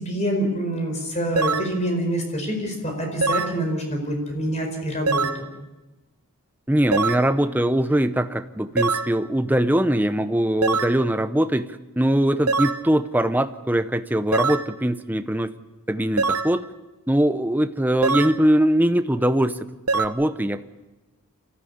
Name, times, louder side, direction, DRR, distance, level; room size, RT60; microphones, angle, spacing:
voice 1, 0.0-5.6, equal, 30° left, 3 dB, 4.9 m, -26 dB
sound 1, 1.4-1.7 3.2-3.6 5.1-5.4 6.9-7.3 8.8-9.1 10.6-11.0 12.5-12.8 14.3-14.7 16.2-16.5 18.0-18.4 19.9-20.1, right 4 dB, 85° right, 1.0 m, -23 dB
voice 2, 6.7-15.5 15.9-16.7 17.1-19.7 19.9-20.7, right 1 dB, 10° right, 10 dB, 0.7 m, -22 dB
25.0 x 14.5 x 8.6 m, 1.1 s
head